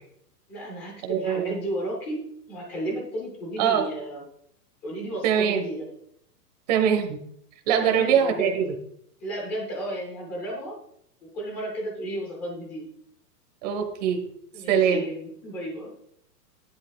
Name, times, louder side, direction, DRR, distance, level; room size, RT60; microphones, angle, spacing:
voice 1, 0.5-2.2 2.5-4.2 4.8-5.9 7.8-8.6 9.2-10.8 11.2-12.9 14.5-15.9, right 1 dB, 5° left, 0 dB, 0.6 m, -33 dB
voice 2, 1.0-1.5 3.6-3.9 5.2-5.6 6.7-7.2 7.7-8.7 13.6-14.2 14.7-15.0, right 8 dB, 25° right, 5 dB, 1.2 m, -22 dB
13.5 x 10.5 x 2.3 m, 0.70 s
hypercardioid pair, 175°, 49 cm